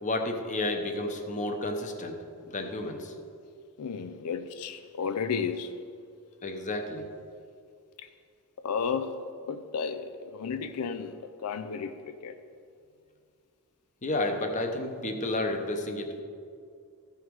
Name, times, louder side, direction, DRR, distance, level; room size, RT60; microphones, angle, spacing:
voice 1, 0.0-3.1 6.4-7.1 14.0-16.2, left 2 dB, 35° left, 5 dB, 0.9 m, -31 dB
voice 2, 3.8-5.7 8.6-9.2 9.5-11.2 11.4-12.4, left 6 dB, 85° left, 10 dB, 0.5 m, -33 dB
14.0 x 5.7 x 4.7 m, 2.3 s
head